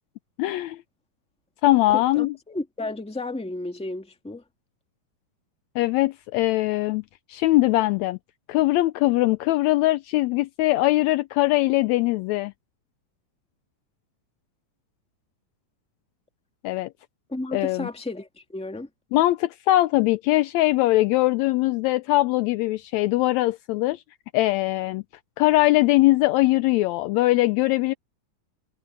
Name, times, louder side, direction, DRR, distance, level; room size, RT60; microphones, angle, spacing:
voice 1, 0.4-0.8 1.6-2.3 5.7-7.0 7.3-8.2 8.5-12.5 16.6-16.9 17.5-17.9 19.1-24.0 24.3-25.0 25.4-27.9, left 18 dB, 90° left, 1.5 m, -21 dB
voice 2, 1.9-4.4 17.3-18.9, left 2 dB, 5° left, 1.4 m, -33 dB
omnidirectional pair, 3.7 m